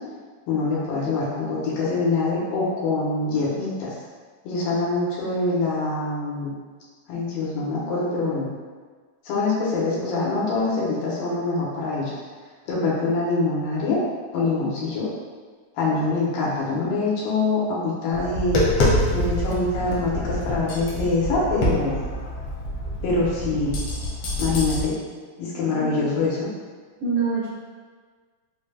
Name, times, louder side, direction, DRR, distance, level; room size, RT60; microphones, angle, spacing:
voice 1, 0.5-3.9 4.4-6.5 7.1-8.5 9.3-12.2 12.7-14.0 14.3-15.1 15.7-18.6 19.1-21.9 23.0-23.7 24.4-24.9 25.4-26.5, left 3 dB, 85° left, -6 dB, 2.6 m, -24 dB
Tap, 18.1-24.8, left 1 dB, 70° left, 1.5 m, -26 dB
voice 2, 25.7-26.0 27.0-27.5, right 5 dB, 70° right, -8 dB, 1.4 m, -25 dB
5.9 x 3.3 x 2.2 m, 1.5 s
omnidirectional pair, 3.9 m